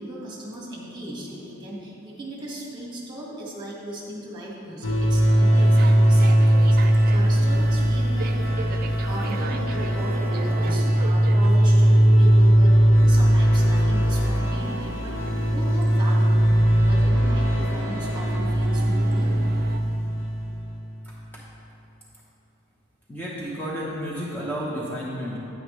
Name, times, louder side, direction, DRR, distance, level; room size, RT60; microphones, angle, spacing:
voice 1, 0.0-16.4 16.8-19.4, right 1 dB, 20° right, -4 dB, 1.6 m, -37 dB
sound 1, 4.8-20.7, right 1 dB, 75° left, 0.9 m, -19 dB
sound 2, 5.6-19.8, right 4 dB, 50° right, 0.4 m, -38 dB
voice 2, 21.0-21.4 23.1-25.4, equal, 10° left, -6 dB, 0.8 m, -32 dB
9.6 x 8.3 x 3.1 m, 3.0 s
head